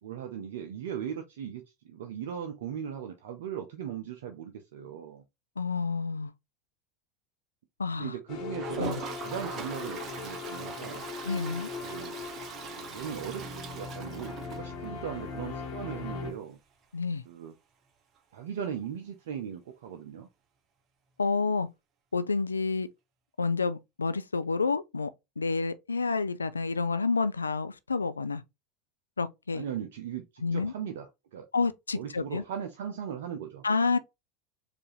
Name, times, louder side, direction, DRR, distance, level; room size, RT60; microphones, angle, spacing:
voice 1, 0.0-5.2 8.0-11.0 11.8-12.2 12.9-16.6 17.3-17.5 18.3-20.3 29.5-31.5 31.9-33.6, right 8 dB, 65° right, 0.5 m, -38 dB
voice 2, 5.6-6.3 7.8-8.1 8.8-9.0 11.2-11.7 16.9-17.2 21.2-21.7 22.1-22.9 23.4-25.1 25.4-28.4 29.2-29.6 30.4-30.7 31.5-32.4 33.6-34.0, left 4 dB, 85° left, 0.3 m, -29 dB
sound 1, 8.3-16.3, left 5 dB, 45° left, 1.1 m, -39 dB
Toilet flush, 8.5-15.2 15.5-15.6 15.8-15.9 16.2-16.3 18.8-18.9 20.2-20.3, right 7 dB, 40° right, 0.8 m, -41 dB
4.6 x 2.5 x 3.1 m
figure-of-eight pair, 80°, 0 cm